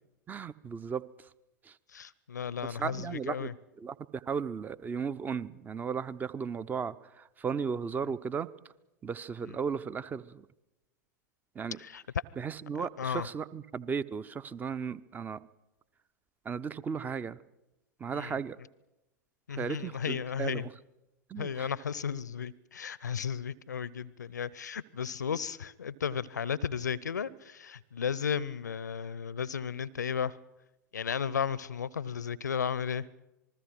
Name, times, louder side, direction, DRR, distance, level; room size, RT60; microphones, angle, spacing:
voice 1, 0.3-1.3 1.6-1.8 2.7-3.5 3.8-8.5 9.0-10.5 11.5-11.8 12.4-15.5 16.4-17.4 18.0-18.6 19.5-20.7 21.3-21.7, right 6 dB, 20° right, 18 dB, 0.7 m, -35 dB
voice 2, 1.9-3.5 9.5-9.6 11.8-12.0 12.8-13.3 18.1-18.4 19.5-20.7 21.4-30.4 30.9-33.1, left 7 dB, 75° left, 23 dB, 0.7 m, -34 dB
27.0 x 20.5 x 6.0 m, 0.97 s
figure-of-eight pair, 90°, 10 cm